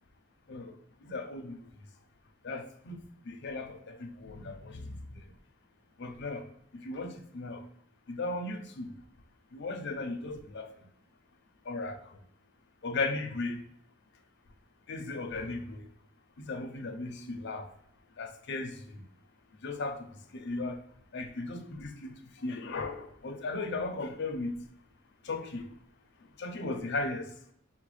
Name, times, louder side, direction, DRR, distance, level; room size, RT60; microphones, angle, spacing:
voice 1, 1.0-1.6 2.4-5.2 6.0-6.4 6.8-7.6 8.1-8.9 9.5-10.7 11.7-12.0 12.8-13.6 14.9-15.9 16.4-17.7 18.2-19.0 19.6-20.8 21.1-24.5 25.2-25.7 26.4-27.3, left 3 dB, 60° left, 0.6 m, -36 dB
6.0 x 2.2 x 3.2 m
head